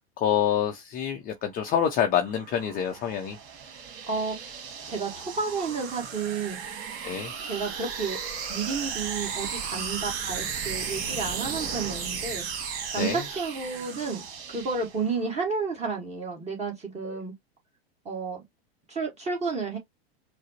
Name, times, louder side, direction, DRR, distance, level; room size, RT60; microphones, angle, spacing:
voice 1, 0.0-3.4 7.0-7.3 13.0-13.3 17.0-17.2, left 9 dB, 30° left, 0.5 m, -27 dB
sound 1, 1.8-15.3, right 6 dB, 45° right, 2.0 m, -35 dB
voice 2, 4.1-4.5 4.8-6.7 7.4-8.2 8.5-14.2 14.5-17.3 18.0-18.4 18.9-19.8, right 4 dB, 20° right, 1.4 m, -31 dB
4.8 x 2.0 x 2.8 m
hypercardioid pair, 125°, 31 cm